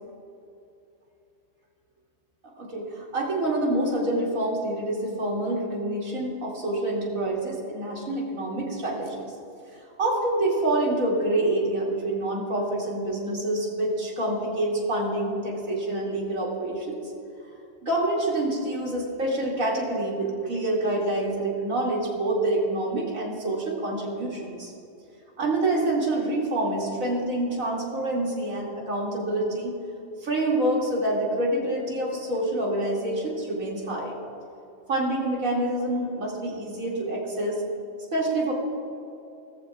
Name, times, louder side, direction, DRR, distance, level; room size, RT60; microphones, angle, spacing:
voice 1, 2.6-9.3 9.7-17.0 17.8-24.7 25.4-29.7 30.2-34.1 34.9-37.6 38.1-38.5, right 1 dB, 90° right, -3 dB, 2.9 m, -27 dB
19.0 x 14.0 x 2.4 m, 2.7 s
omnidirectional pair, 1.4 m